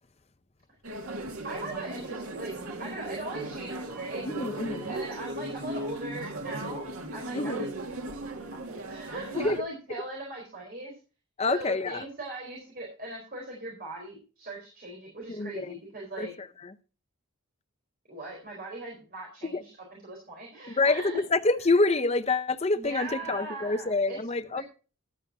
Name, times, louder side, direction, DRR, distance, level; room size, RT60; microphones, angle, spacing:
sound 1, 0.8-9.6, right 1 dB, 80° right, 2.2 m, -37 dB
voice 1, 1.4-4.3 4.9-6.8 7.1-7.7 8.5-11.0 11.5-16.3 18.1-21.2 22.7-24.2 24.5-24.6, right 2 dB, 40° right, 4.3 m, -39 dB
voice 2, 4.3-4.9 7.3-7.6 9.3-9.6 11.4-12.0 15.3-15.5 16.2-16.3 19.5-19.6 20.8-21.0 21.3-24.6, left 3 dB, 30° left, 0.7 m, -26 dB
14.0 x 11.0 x 2.8 m
head